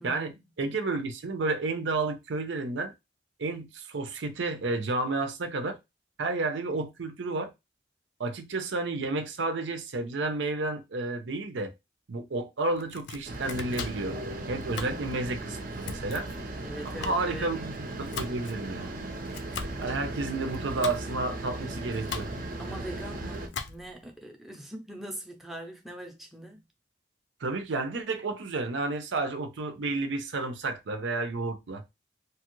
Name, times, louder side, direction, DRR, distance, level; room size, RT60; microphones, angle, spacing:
voice 1, 0.0-0.4 14.7-15.1 16.6-17.5 22.6-26.6, right 1 dB, ahead, 0.5 m, -42 dB
voice 2, 0.6-2.9 3.4-5.8 6.2-7.5 8.2-11.7 12.1-14.2 14.5-16.3 16.8-18.9 19.8-22.3 27.4-31.8, right 3 dB, 90° right, 0.6 m, -31 dB
Domestic sounds home sounds, 12.7-24.1, left 5 dB, 80° left, 0.4 m, -41 dB
sound 1, 13.3-23.5, right 2 dB, 45° right, 0.5 m, -37 dB
2.9 x 2.4 x 3.0 m
head